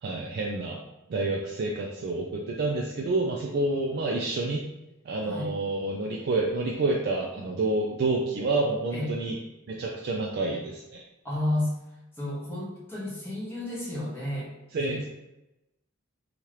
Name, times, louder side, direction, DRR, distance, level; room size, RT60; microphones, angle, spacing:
voice 1, 0.0-0.8 1.1-4.6 5.0-9.4 9.7-11.0 14.7-15.1, right 2 dB, 50° right, -1 dB, 0.3 m, -28 dB
voice 2, 11.2-11.8 12.2-14.5 14.9-15.1, left 1 dB, 10° left, -7 dB, 0.8 m, -31 dB
2.8 x 2.4 x 3.1 m, 0.98 s
head